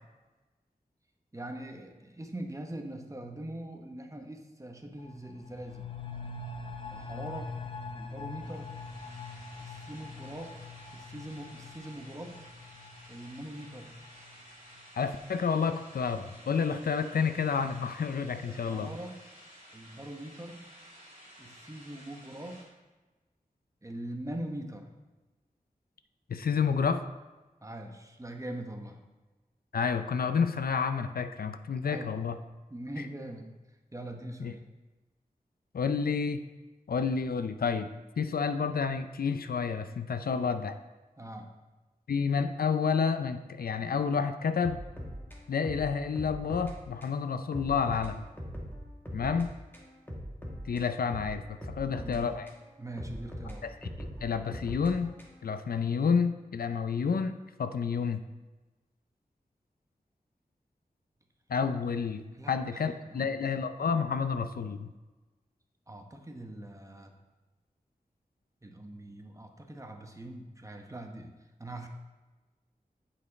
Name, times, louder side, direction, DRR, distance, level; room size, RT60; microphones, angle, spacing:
voice 1, 1.3-5.9 6.9-7.5 7.9-8.8 9.6-10.6 10.9-12.5 13.1-13.9 18.5-19.2 19.7-20.7 21.4-22.7 23.8-24.9 27.6-29.0 31.8-32.2 32.7-33.5 33.9-34.6 41.2-41.5 51.8-52.3 52.8-53.6 62.3-63.6 65.9-67.1 68.6-71.9, right 1 dB, 20° right, 3 dB, 0.9 m, -42 dB
sound 1, 5.0-14.4 14.7-14.8, left 3 dB, 35° left, 0.6 m, -43 dB
sound 2, 8.4-22.6, equal, 55° right, 2.6 m, -53 dB
voice 2, 15.0-18.9 26.3-27.0 29.7-32.4 34.4-34.5 35.7-36.4 36.9-37.9 38.2-40.8 42.1-44.8 45.5-48.3 49.1-49.5 50.7-52.5 53.6-53.7 54.2-55.1 55.4-58.2 61.5-64.9, left 6 dB, 80° left, 9 dB, 0.4 m, -30 dB
sound 3, 44.6-46.8 47.0-47.2 47.5-49.5 49.7-52.6 53.0-55.5, equal, 15° left, 1.5 m, -41 dB
8.6 x 5.1 x 4.1 m, 1.2 s
wide cardioid pair, 70°, 15 cm